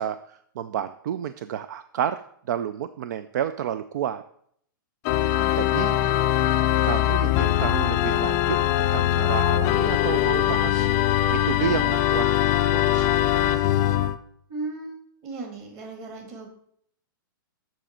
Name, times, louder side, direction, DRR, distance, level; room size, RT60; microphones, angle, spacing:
voice 1, 0.0-2.2 2.5-4.2 5.5-6.0 6.8-10.9 11.3-12.2 12.7-13.2, right 10 dB, 55° right, 12 dB, 0.4 m, -30 dB
Organ, 5.0-14.2, left 13 dB, 25° left, 0.4 m, -22 dB
voice 2, 5.3-6.7 14.5-14.9 15.2-16.5, right 3 dB, 30° right, 3 dB, 1.8 m, -37 dB
7.4 x 6.5 x 4.3 m, 0.66 s
hypercardioid pair, 165°, 12 cm